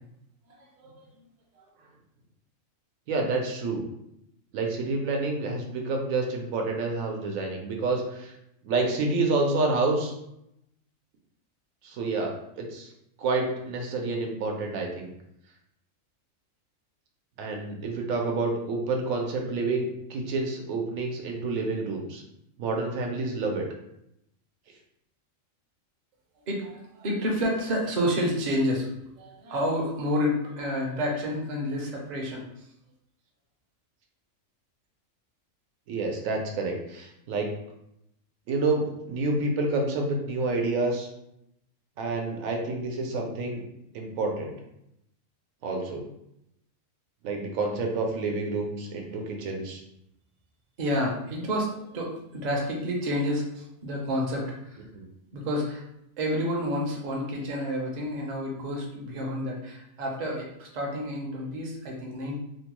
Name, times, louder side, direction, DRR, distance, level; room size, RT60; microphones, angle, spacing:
voice 1, 3.1-3.9 4.5-8.3 8.6-10.1 11.8-12.9 13.2-15.1 17.4-22.2 22.6-23.6 35.9-37.5 38.5-41.1 42.0-43.6 43.9-44.5 45.6-46.0 47.2-49.8 54.9-55.0, right 3 dB, 85° right, 1 dB, 1.0 m, -28 dB
voice 2, 26.5-28.9 29.2-32.4 50.8-54.8 55.3-55.8 56.2-62.4, equal, 45° right, -1 dB, 0.5 m, -29 dB
3.0 x 2.1 x 2.9 m, 0.80 s
omnidirectional pair, 1.4 m